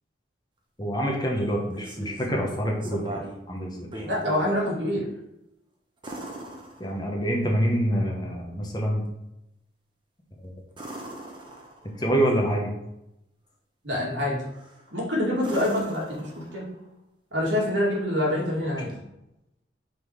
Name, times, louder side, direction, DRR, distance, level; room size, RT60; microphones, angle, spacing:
voice 1, 0.8-3.9 6.8-9.0 10.4-10.5 12.0-12.7, equal, 20° left, 0 dB, 1.0 m, -26 dB
sound 1, 1.5-2.3 2.8-3.4 3.8-4.6 6.0-7.3 10.7-12.0 14.5-14.9 15.4-16.8 18.9-19.0, right 1 dB, 25° right, 1.0 m, -39 dB
voice 2, 4.0-5.0 13.8-14.4 14.9-16.7 17.3-18.9, left 1 dB, 75° right, -3 dB, 2.2 m, -26 dB
5.4 x 4.2 x 4.9 m, 0.86 s
head